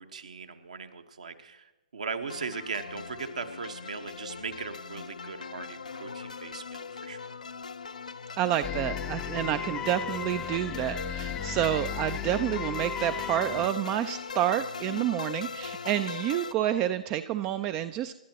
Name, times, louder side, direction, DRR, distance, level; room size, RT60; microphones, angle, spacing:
voice 1, 0.0-7.4, right 5 dB, 65° right, 6 dB, 1.5 m, -39 dB
sound 1, 2.3-16.5, left 5 dB, 70° left, 0.7 m, -40 dB
voice 2, 8.4-18.1, right 11 dB, 25° right, 11 dB, 0.4 m, -29 dB
sound 2, 8.6-13.7, left 9 dB, 15° left, 0.6 m, -35 dB
27.0 x 12.0 x 3.0 m, 1.0 s
figure-of-eight pair, 125°, 4 cm